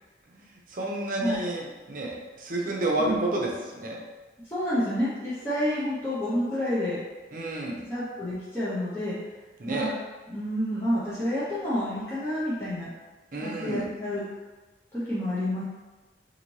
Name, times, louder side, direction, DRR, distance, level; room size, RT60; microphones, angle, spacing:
voice 1, 0.7-4.0 7.3-7.8 9.6-9.9 13.3-13.9, right 2 dB, 45° right, -2 dB, 0.6 m, -30 dB
voice 2, 4.5-7.0 7.9-9.1 9.7-9.9 10.3-12.9 13.4-14.2 14.9-15.6, equal, 10° left, -11 dB, 0.6 m, -29 dB
4.1 x 2.6 x 3.0 m, 1.2 s
head